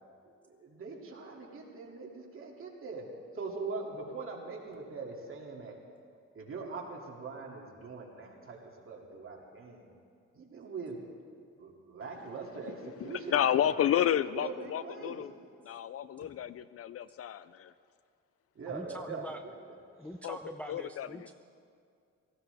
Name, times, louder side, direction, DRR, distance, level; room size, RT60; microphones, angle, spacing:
voice 1, 0.2-3.1 3.3-5.8 6.3-9.9 10.3-11.0 11.6-13.8 14.4-15.2 18.5-19.5, right 4 dB, 45° right, -1 dB, 2.7 m, -42 dB
voice 2, 13.0-15.3 15.7-17.7 20.2-20.4 20.7-21.3, left 10 dB, 50° left, 16 dB, 0.4 m, -31 dB
voice 3, 18.7-19.4 20.0-21.3, equal, 5° left, 4 dB, 0.6 m, -43 dB
18.0 x 15.0 x 3.5 m, 2.3 s
cardioid pair, 90°, 30 cm